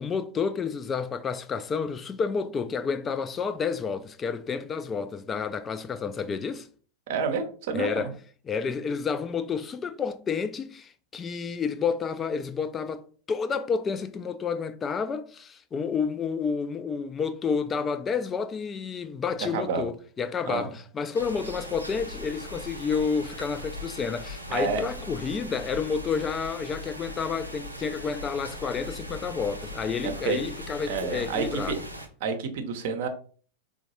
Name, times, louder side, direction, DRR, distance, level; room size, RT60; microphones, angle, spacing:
voice 1, 0.0-6.7 7.7-8.1 8.5-31.8, left 5 dB, 20° left, 0.3 m, -30 dB
voice 2, 7.1-8.1 19.5-19.8 20.4-20.7 24.5-24.8 30.0-30.4 30.9-31.8 32.2-33.1, right 5 dB, 50° right, 0.7 m, -29 dB
sound 1, 21.1-32.1, left 1 dB, 90° right, 0.6 m, -39 dB
4.4 x 2.2 x 3.0 m
figure-of-eight pair, 90°, 0 cm